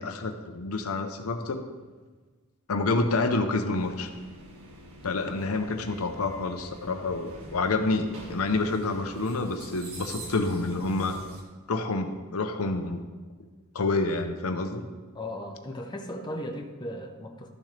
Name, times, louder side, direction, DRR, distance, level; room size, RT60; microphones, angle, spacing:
voice 1, 0.0-1.6 2.7-4.1 5.0-11.2 11.7-13.0 13.7-14.8, left 3 dB, 80° left, 6 dB, 0.8 m, -28 dB
sound 1, 3.7-11.4, right 1 dB, 90° right, 1.7 m, -45 dB
voice 2, 15.1-17.5, left 1 dB, 20° left, 3 dB, 0.8 m, -37 dB
12.5 x 6.8 x 3.3 m, 1.4 s
head